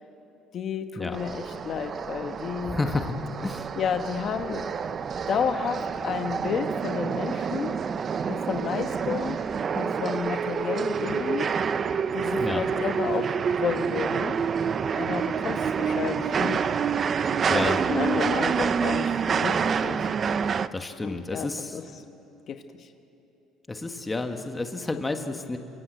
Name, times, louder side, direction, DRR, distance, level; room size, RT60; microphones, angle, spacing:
voice 1, 0.5-2.8 3.8-4.7 5.3-7.8 8.3-9.4 9.7-11.5 12.1-14.3 15.0-16.6 17.5-20.1 21.0-21.8 22.5-22.9, left 7 dB, 40° left, 7 dB, 1.2 m, -31 dB
sound 1, 1.1-20.7, right 6 dB, 30° right, 0.6 m, -28 dB
voice 2, 2.7-3.1 3.4-3.7 12.4-12.6 17.5-17.8 20.7-21.8 23.7-25.6, left 3 dB, 15° left, 5 dB, 1.4 m, -30 dB
27.0 x 26.0 x 8.0 m, 2.8 s
cardioid pair, 145°, 0 cm